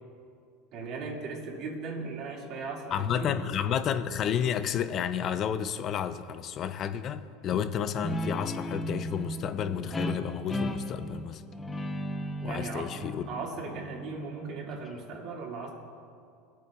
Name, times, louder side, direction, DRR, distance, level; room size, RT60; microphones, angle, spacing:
voice 1, 0.7-3.4 12.4-13.0 13.3-15.7, right 4 dB, 55° right, -1 dB, 2.2 m, -38 dB
voice 2, 2.9-11.4 12.4-13.2, left 8 dB, 40° left, 12 dB, 0.6 m, -31 dB
Guitar, 8.0-15.2, equal, 15° left, 0.8 m, -36 dB
22.0 x 8.4 x 2.4 m, 2.4 s
supercardioid pair, 110°, 0 cm